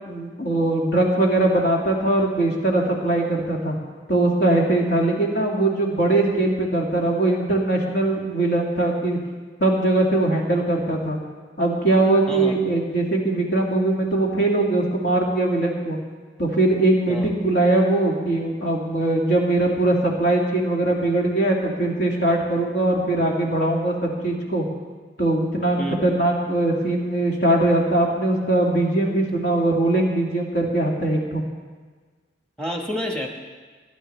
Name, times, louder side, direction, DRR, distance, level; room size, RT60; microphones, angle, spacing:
voice 1, 0.1-3.8 4.1-9.2 9.6-11.2 11.6-16.0 16.4-24.7 25.2-31.4, right 2 dB, 65° left, -1 dB, 2.1 m, -21 dB
voice 2, 32.6-33.3, equal, 5° left, 1 dB, 1.3 m, -28 dB
19.5 x 11.0 x 3.3 m, 1.4 s
head